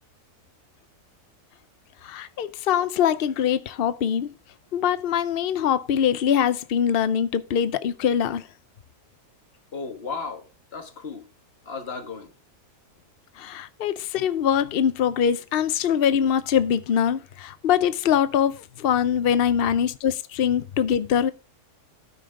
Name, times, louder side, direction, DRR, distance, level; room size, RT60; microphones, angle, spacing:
voice 1, 2.0-4.3 4.7-8.5 13.4-21.3, left 8 dB, 75° left, 0.5 m, -23 dB
voice 2, 9.7-11.3 11.6-12.3, left 4 dB, 40° left, 1.7 m, -35 dB
13.5 x 5.6 x 3.6 m
omnidirectional pair, 1.7 m